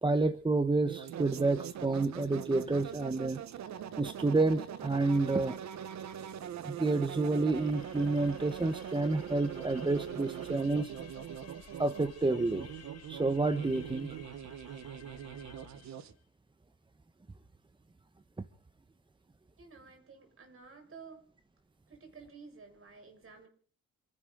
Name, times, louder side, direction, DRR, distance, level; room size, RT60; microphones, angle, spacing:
voice 1, 0.0-3.4 4.0-5.6 6.6-10.9 11.8-12.7 13.1-14.1, right 3 dB, 15° right, 11 dB, 1.1 m, -29 dB
sound 1, 0.8-16.1, right 9 dB, 65° right, 1.3 m, -42 dB
sound 2, 7.5-16.1, left 6 dB, 55° left, 4.6 m, -55 dB
voice 2, 19.6-21.2 21.9-23.5, right 5 dB, 45° right, 5 dB, 6.9 m, -52 dB
27.5 x 11.5 x 4.0 m, 0.43 s
cardioid pair, 90°, 30 cm